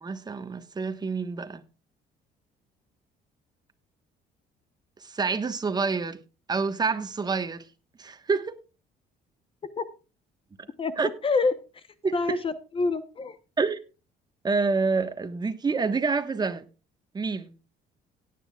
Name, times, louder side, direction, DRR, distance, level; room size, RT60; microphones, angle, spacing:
voice 1, 0.0-1.6 5.0-6.2 6.5-7.6 8.0-8.6 11.0-11.1 12.0-12.4 13.6-13.8 14.4-16.6 17.1-17.5, right 4 dB, 25° right, 1.4 m, -27 dB
voice 2, 10.8-11.8 12.1-13.4, left 4 dB, 30° left, 1.0 m, -27 dB
17.5 x 9.6 x 2.4 m
cardioid pair, 110°, 17 cm